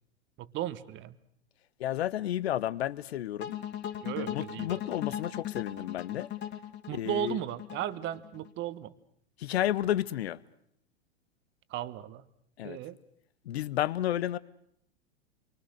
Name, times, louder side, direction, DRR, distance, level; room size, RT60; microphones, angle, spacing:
voice 1, 0.4-1.2 4.0-4.8 6.9-8.9 11.7-12.3 12.6-13.0, right 12 dB, 35° right, 1.2 m, -35 dB
voice 2, 1.8-3.6 4.3-6.3 7.0-7.4 9.4-10.4 12.6-12.8 13.5-14.4, left 12 dB, 70° left, 0.9 m, -31 dB
sound 1, 3.4-8.5, left 11 dB, 30° left, 1.6 m, -38 dB
28.0 x 24.0 x 6.5 m
hypercardioid pair, 105°, 34 cm